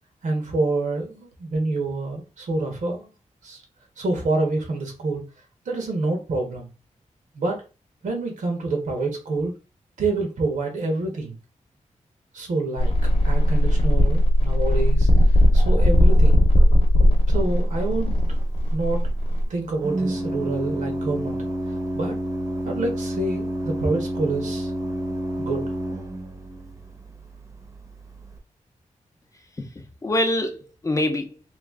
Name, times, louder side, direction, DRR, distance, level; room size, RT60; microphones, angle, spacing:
voice 1, 0.2-3.1 3.4-3.6 4.0-5.2 5.6-6.7 7.3-7.6 8.0-9.5 10.0-11.4 12.3-12.9 13.2-15.1 15.5-16.4 17.3-18.1 18.7-19.0 19.5-21.5 21.9-22.1 22.6-24.7 25.4-25.6, right 2 dB, 85° right, 1.2 m, -27 dB
sound 1, 12.8-19.4, equal, 45° left, 0.8 m, -18 dB
Organ, 18.2-28.4, right 1 dB, 25° right, 0.7 m, -30 dB
voice 2, 29.3-31.4, left 1 dB, 25° left, 0.5 m, -26 dB
3.0 x 2.4 x 3.5 m
wide cardioid pair, 140°, 13 cm